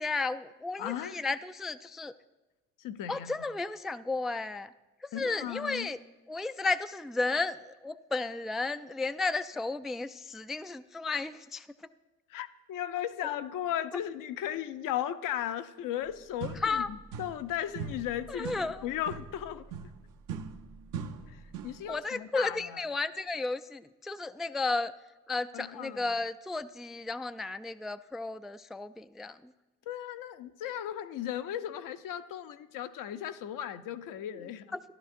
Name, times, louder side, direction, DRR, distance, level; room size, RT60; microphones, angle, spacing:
voice 1, 0.0-2.1 3.1-4.7 5.0-6.0 6.3-11.9 16.5-16.9 18.3-18.9 20.3-20.4 21.9-24.9 25.3-29.5 34.7-34.8, left 3 dB, ahead, 12 dB, 0.3 m, -33 dB
voice 2, 0.8-1.2 2.8-3.4 5.1-5.9 12.3-16.8 17.2-19.7 21.3-22.8 25.5-26.0 29.9-34.7, left 11 dB, 65° left, 11 dB, 0.7 m, -36 dB
sound 1, 16.0-16.1 16.4-17.5 17.8-21.9, right 6 dB, 65° right, 0.9 m, -41 dB
13.5 x 12.0 x 2.6 m, 1.1 s
hypercardioid pair, 50°, 35 cm